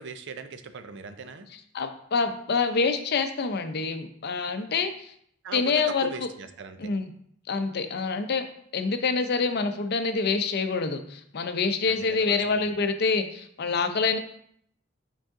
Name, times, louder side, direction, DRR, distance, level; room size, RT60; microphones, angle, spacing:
voice 1, 0.0-1.5 5.4-6.9 11.8-12.6, right 4 dB, 60° right, 9 dB, 0.5 m, -40 dB
voice 2, 1.7-5.1 5.5-6.3 6.8-7.1 7.5-8.5 8.7-14.2, left 4 dB, 50° left, 8 dB, 0.6 m, -26 dB
5.6 x 5.2 x 3.6 m, 0.67 s
head